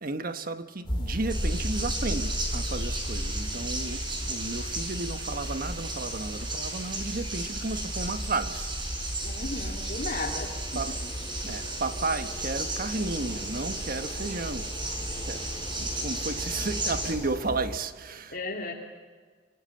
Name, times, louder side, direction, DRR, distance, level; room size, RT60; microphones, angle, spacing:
voice 1, 0.0-8.7 9.6-9.7 10.7-11.0 11.4-15.0 15.3-18.3, right 3 dB, 50° right, 1.3 m, -33 dB
sound 1, 0.9-17.8, equal, 30° left, 3.2 m, -35 dB
sound 2, 1.3-17.2, right 2 dB, 25° right, 5.3 m, -35 dB
voice 2, 9.2-10.5 18.3-18.7, left 3 dB, 50° left, 2.7 m, -34 dB
26.0 x 26.0 x 8.8 m
head